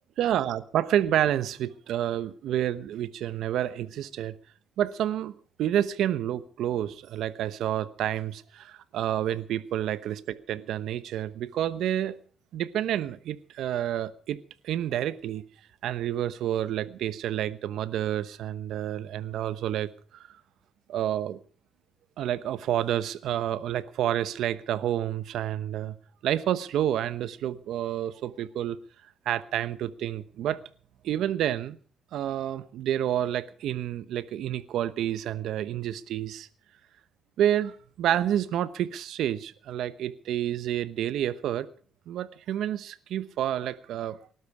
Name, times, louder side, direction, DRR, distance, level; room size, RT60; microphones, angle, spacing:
voice 1, 0.2-4.3 4.8-12.2 12.5-14.4 14.6-15.4 15.8-20.3 20.9-21.4 22.2-25.9 26.2-28.8 29.3-30.6 31.0-31.8 32.1-36.5 37.4-41.7 42.1-44.3, right 11 dB, 80° right, 0.9 m, -29 dB
19.5 x 12.5 x 4.8 m
cardioid pair, 90°, 0 cm